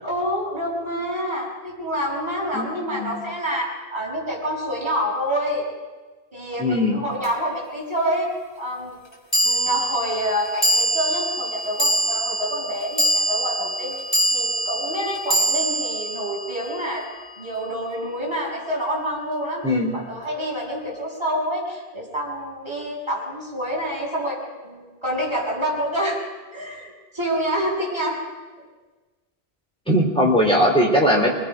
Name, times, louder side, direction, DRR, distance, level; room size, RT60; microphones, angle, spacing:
voice 1, 0.0-5.6 6.3-8.3 8.6-8.9 9.4-14.0 14.3-17.1 17.4-19.6 19.9-24.4 24.6-26.2 26.5-28.2, equal, 25° right, -5 dB, 6.8 m, -27 dB
voice 2, 2.5-3.2 6.6-7.0 19.6-20.0 29.9-31.3, equal, 5° left, -2 dB, 4.0 m, -19 dB
sound 1, 7.2-7.3 9.3-17.7, right 1 dB, 25° left, 2.9 m, -24 dB
25.0 x 20.5 x 5.2 m, 1.3 s
omnidirectional pair, 1.1 m